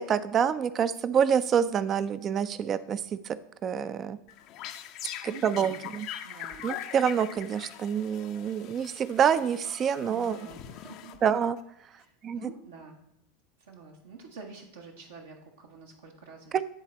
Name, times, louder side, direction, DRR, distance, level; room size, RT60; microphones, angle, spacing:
voice 1, 0.0-3.4 3.6-4.2 5.2-6.1 6.6-10.4 11.2-11.6 12.2-12.5 16.5-16.6, right 8 dB, 35° right, 14 dB, 0.4 m, -27 dB
sound 1, 4.3-11.6, left 11 dB, 50° left, 0.5 m, -42 dB
voice 2, 5.0-5.9 6.2-6.7 10.0-11.1 11.9-13.0 13.6-16.5, right 4 dB, 75° right, 0 dB, 1.0 m, -47 dB
9.8 x 3.9 x 4.2 m, 0.83 s
hypercardioid pair, 85°, 0 cm